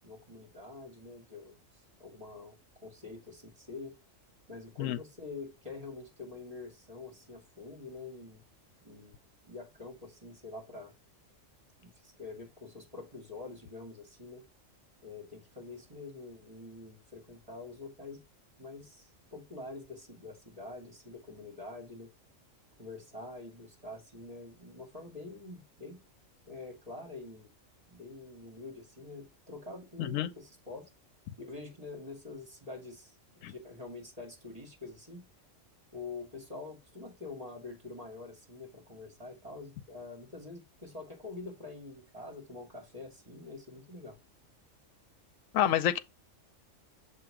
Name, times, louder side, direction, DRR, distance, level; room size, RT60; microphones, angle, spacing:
voice 1, 0.0-2.6 2.8-4.0 4.5-8.4 8.8-9.2 9.4-10.9 11.8-14.4 15.0-18.2 18.6-22.1 22.8-26.0 26.5-27.5 27.9-30.9 31.4-35.3 35.9-44.2, left 3 dB, 30° right, 2.4 m, -46 dB
voice 2, 30.0-30.3 33.4-33.5 45.5-46.0, left 11 dB, 80° left, 1.0 m, -28 dB
6.8 x 2.9 x 4.8 m
omnidirectional pair, 1.3 m